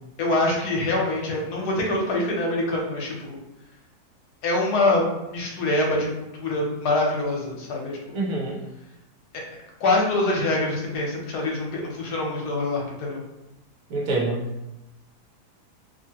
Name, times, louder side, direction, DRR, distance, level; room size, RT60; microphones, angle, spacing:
voice 1, 0.2-3.4 4.4-8.2 9.8-13.2, left 2 dB, 75° left, -1 dB, 1.2 m, -25 dB
voice 2, 8.1-8.6 13.9-14.7, right 2 dB, 65° right, -3 dB, 0.9 m, -26 dB
2.7 x 2.6 x 2.8 m, 0.94 s
omnidirectional pair, 1.7 m